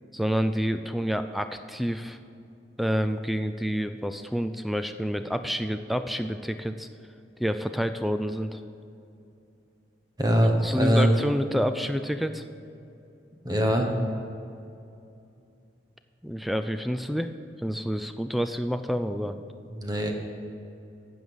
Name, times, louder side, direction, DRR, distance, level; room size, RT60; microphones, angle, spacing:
voice 1, 0.1-2.2 2.8-6.9 7.4-8.6 10.6-12.4 16.2-17.3 17.6-19.4, equal, ahead, 9 dB, 0.3 m, -28 dB
voice 2, 10.2-11.2 13.4-13.9 19.7-20.1, equal, 20° right, 3 dB, 1.1 m, -22 dB
12.5 x 8.0 x 5.4 m, 2.6 s
head